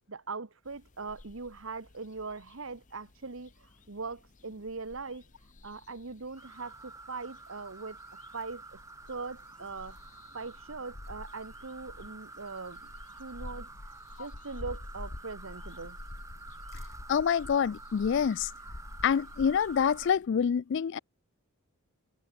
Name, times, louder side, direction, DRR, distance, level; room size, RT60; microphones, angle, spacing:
voice 1, 0.1-5.2 5.6-8.0 8.3-8.8 9.1-10.0 10.3-12.9 13.2-13.7 14.2-16.0, right 4 dB, 65° right, 1.2 m, -41 dB
sound 1, 0.7-20.3, left 2 dB, 35° left, 0.9 m, -49 dB
sound 2, 6.3-20.1, right 3 dB, 15° right, 0.7 m, -49 dB
voice 2, 17.1-18.5 19.0-21.0, left 7 dB, 55° left, 0.3 m, -26 dB
head